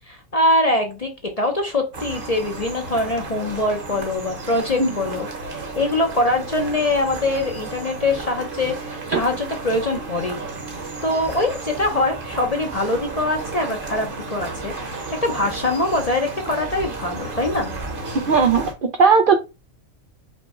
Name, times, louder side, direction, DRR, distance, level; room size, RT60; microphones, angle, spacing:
voice 1, 0.1-10.5 11.0-17.7, left 2 dB, 40° left, 3 dB, 0.6 m, -23 dB
sound 1, 1.9-18.7, right 3 dB, 45° right, 1.1 m, -33 dB
voice 2, 18.3-18.7 19.0-19.3, right 5 dB, 65° right, 6 dB, 0.5 m, -15 dB
5.2 x 2.2 x 4.1 m, 0.27 s
omnidirectional pair, 1.4 m